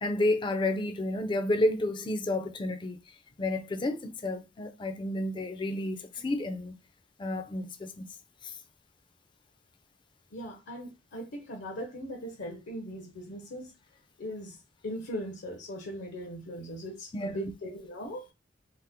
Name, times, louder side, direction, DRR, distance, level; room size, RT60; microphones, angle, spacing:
voice 1, 0.0-3.0 3.4-6.7 7.2-8.1 8.4-8.5 17.1-17.5, left 1 dB, 25° left, 0.4 m, -31 dB
voice 2, 10.3-13.7 14.2-14.6 14.8-18.3, equal, 65° left, 0.6 m, -39 dB
2.8 x 2.0 x 3.4 m
head